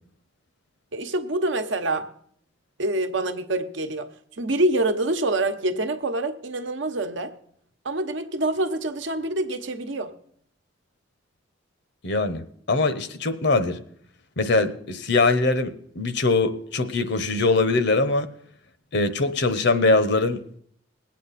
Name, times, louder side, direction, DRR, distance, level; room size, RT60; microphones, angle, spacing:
voice 1, 0.9-2.1 2.8-4.1 4.4-7.3 7.8-10.2, right 2 dB, 70° right, 1.0 m, -26 dB
voice 2, 12.0-12.4 12.7-13.8 14.4-18.3 18.9-20.4, left 3 dB, 60° left, 0.9 m, -22 dB
21.0 x 8.5 x 4.1 m
head